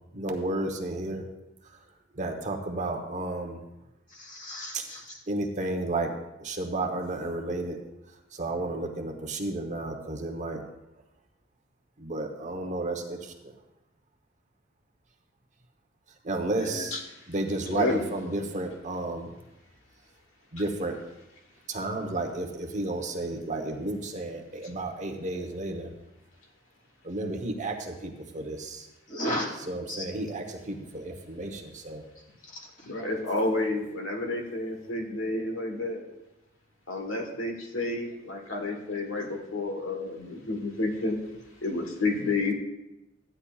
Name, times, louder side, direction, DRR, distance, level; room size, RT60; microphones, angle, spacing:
voice 1, 0.1-1.3 1.6-1.8 2.1-3.6 4.7-4.8 5.3-7.8 8.3-10.6 12.0-13.5 16.2-17.0 17.3-19.3 20.5-20.9 21.7-25.9 27.0-28.9 29.7-32.0, right 2 dB, 40° right, 4 dB, 1.0 m, -32 dB
voice 2, 4.1-5.2 16.6-16.9 29.1-29.5 29.9-30.0 32.4-33.0, equal, 45° left, -2 dB, 2.8 m, -35 dB
voice 3, 17.7-18.0 32.9-36.0 36.9-41.2 41.6-42.5, left 2 dB, 75° left, 2 dB, 1.3 m, -30 dB
14.0 x 10.0 x 2.4 m, 0.96 s
head